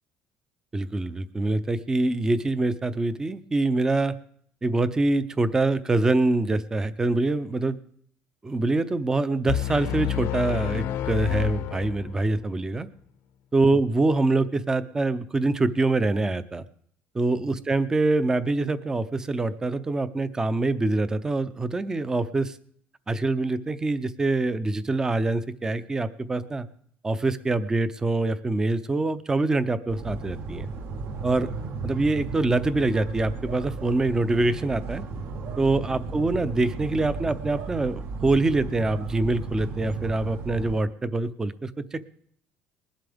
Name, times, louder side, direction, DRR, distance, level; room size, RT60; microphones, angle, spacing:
voice 1, 0.7-4.2 4.6-7.8 8.4-12.9 13.5-16.6 17.1-22.6 23.1-26.7 27.0-30.7 31.2-31.5 31.8-35.0 35.6-42.0, right 2 dB, 15° right, 13 dB, 0.6 m, -25 dB
sound 1, 9.5-12.4, left 12 dB, 65° left, 0.7 m, -29 dB
sound 2, 29.9-40.8, right 4 dB, 55° right, 1.1 m, -35 dB
20.5 x 11.5 x 3.5 m, 0.63 s
cardioid pair, 160°, 4 cm